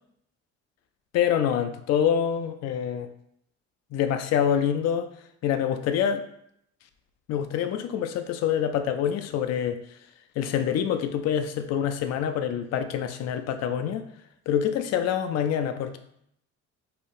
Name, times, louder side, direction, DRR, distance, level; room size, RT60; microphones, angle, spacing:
voice 1, 1.1-3.1 3.9-5.1 5.4-6.2 7.3-9.8 10.4-14.1 14.5-16.0, left 9 dB, 45° left, 7 dB, 0.4 m, -26 dB
2.8 x 2.4 x 3.1 m, 0.73 s
hypercardioid pair, 55°, 36 cm